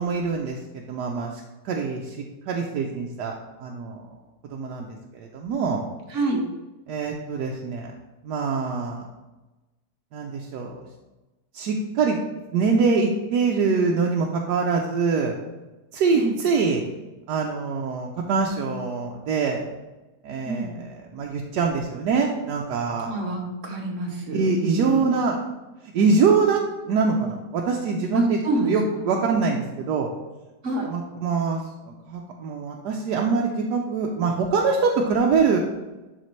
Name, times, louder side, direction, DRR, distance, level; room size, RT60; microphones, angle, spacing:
voice 1, 0.0-2.2 2.5-4.0 4.5-4.9 5.1-5.8 6.9-7.9 8.2-9.0 10.1-10.9 11.5-12.2 12.5-15.3 15.9-16.8 17.3-19.6 20.2-23.2 24.3-25.4 25.9-26.6 26.9-28.4 28.7-30.1 30.9-35.6, right 4 dB, 80° right, 0 dB, 1.2 m, -24 dB
voice 2, 6.1-6.4 16.1-16.3 20.4-20.7 23.1-25.1 28.1-28.7 30.6-30.9, right 2 dB, 50° right, 0 dB, 1.4 m, -26 dB
10.5 x 4.3 x 3.2 m, 1.1 s
omnidirectional pair, 1.8 m